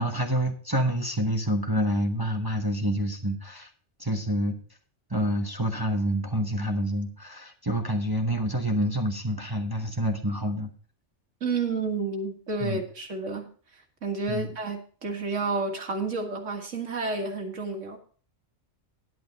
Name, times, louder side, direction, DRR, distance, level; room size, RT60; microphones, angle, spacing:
voice 1, 0.0-3.7 4.0-4.6 5.1-10.7 12.6-12.8 14.3-14.5, equal, 20° right, 3 dB, 1.0 m, -27 dB
voice 2, 11.4-18.0, right 3 dB, 80° right, 3 dB, 2.1 m, -31 dB
11.0 x 8.7 x 4.0 m, 0.42 s
omnidirectional pair, 1.3 m